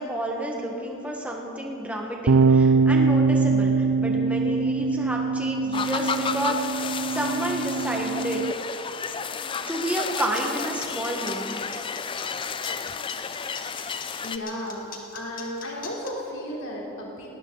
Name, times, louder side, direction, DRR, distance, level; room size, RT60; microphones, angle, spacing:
voice 1, 0.0-8.5 9.7-11.6, right 1 dB, 5° right, -1 dB, 1.6 m, -30 dB
sound 1, 2.3-8.5, right 4 dB, 65° right, 0.4 m, -22 dB
sound 2, 5.7-14.4, left 6 dB, 25° left, 0.4 m, -32 dB
sound 3, 9.9-16.1, left 6 dB, 40° left, 1.8 m, -41 dB
voice 2, 14.2-17.3, left 1 dB, 70° left, -3 dB, 3.7 m, -34 dB
19.0 x 18.5 x 4.1 m, 2.9 s
head